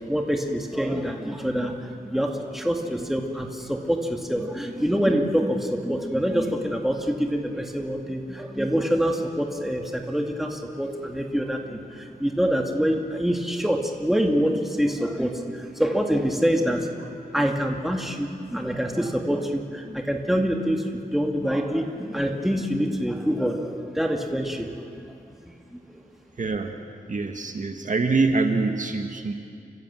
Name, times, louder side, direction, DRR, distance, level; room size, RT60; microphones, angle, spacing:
voice 1, 0.0-17.1 17.3-24.7 25.0-25.1 25.4-26.0, equal, ahead, 2 dB, 2.2 m, -26 dB
voice 2, 26.4-26.7 27.1-29.3, right 3 dB, 50° right, 5 dB, 1.7 m, -24 dB
29.0 x 16.0 x 7.7 m, 2.4 s
wide cardioid pair, 95°, 16 cm